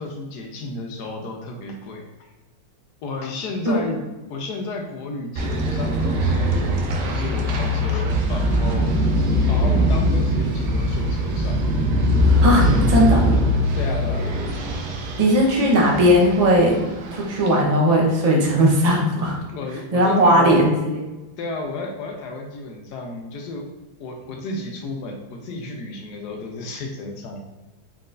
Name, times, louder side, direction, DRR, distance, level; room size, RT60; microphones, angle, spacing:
voice 1, 0.0-2.3 3.0-4.0 4.3-9.0 9.5-11.7 12.6-12.7 13.8-14.3 19.5-20.6 21.4-23.7 24.0-27.4, left 3 dB, 70° left, 3 dB, 1.1 m, -32 dB
sound 1, 5.4-17.6, equal, 70° right, 1.2 m, -21 dB
voice 2, 12.4-13.4 15.2-16.8 17.1-19.4 19.9-20.7, equal, 40° right, -3 dB, 0.5 m, -17 dB
4.2 x 4.2 x 2.5 m, 1.1 s
omnidirectional pair, 2.0 m